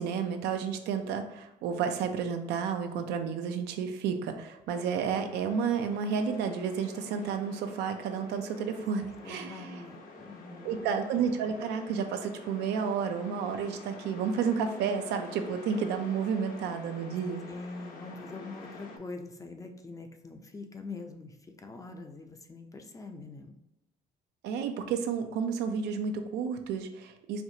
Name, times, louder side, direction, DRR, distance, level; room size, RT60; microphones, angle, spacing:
voice 1, 0.0-9.8 10.6-17.4 24.4-27.4, right 6 dB, 85° right, 7 dB, 0.5 m, -31 dB
sound 1, 4.7-19.0, left 3 dB, 55° left, 0.7 m, -48 dB
voice 2, 9.2-10.7 17.4-23.5, left 3 dB, 20° left, 5 dB, 0.4 m, -44 dB
4.4 x 2.4 x 2.7 m, 0.95 s
cardioid pair, 110°, 17 cm